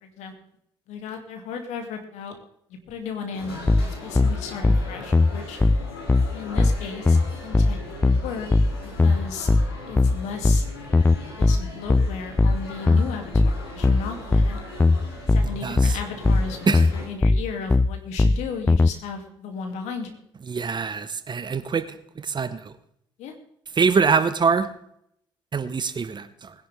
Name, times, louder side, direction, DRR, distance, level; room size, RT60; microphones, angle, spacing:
voice 1, 0.0-0.3 0.9-2.3 2.7-5.6 6.3-8.5 8.8-9.5 9.9-10.6 11.4-14.7 15.3-20.2 23.2-23.3, left 5 dB, 70° left, 4 dB, 2.6 m, -35 dB
sound 1, 3.3-17.1, left 1 dB, 90° left, 3.2 m, -40 dB
sound 2, 3.7-18.9, left 3 dB, 15° left, 0.4 m, -19 dB
voice 2, 20.5-21.9 22.2-22.7 23.8-24.7 25.5-26.5, right 5 dB, 35° right, 13 dB, 1.3 m, -23 dB
20.0 x 10.5 x 3.5 m, 0.70 s
hypercardioid pair, 45°, 12 cm